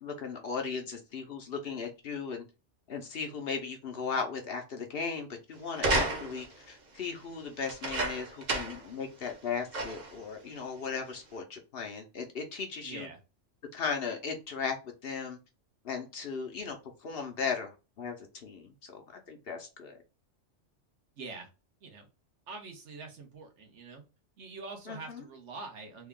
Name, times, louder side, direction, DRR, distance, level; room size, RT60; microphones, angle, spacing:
voice 1, 0.0-2.4 2.9-13.1 13.7-14.8 15.0-15.4 15.8-16.8 17.0-20.0 24.9-25.3, left 5 dB, 55° left, 0.9 m, -37 dB
sound 1, 5.7-6.6 7.6-8.9 9.3-9.4 9.7-10.2 10.9-11.0, right 2 dB, 40° right, 0.8 m, -31 dB
voice 2, 12.8-13.2 21.2-21.5 21.8-22.1 22.5-24.0 24.4-26.1, right 3 dB, 70° right, 1.3 m, -44 dB
3.5 x 2.3 x 3.6 m
omnidirectional pair, 1.3 m